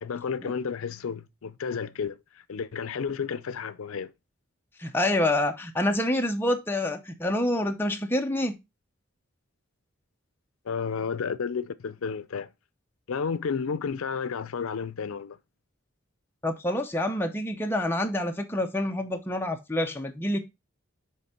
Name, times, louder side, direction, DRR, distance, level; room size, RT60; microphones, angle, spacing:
voice 1, 0.0-4.1 10.6-12.5 13.1-15.4, left 6 dB, 85° left, 0.5 m, -32 dB
voice 2, 4.8-8.6 16.4-20.4, left 1 dB, 10° left, 0.7 m, -27 dB
8.1 x 3.3 x 4.2 m
head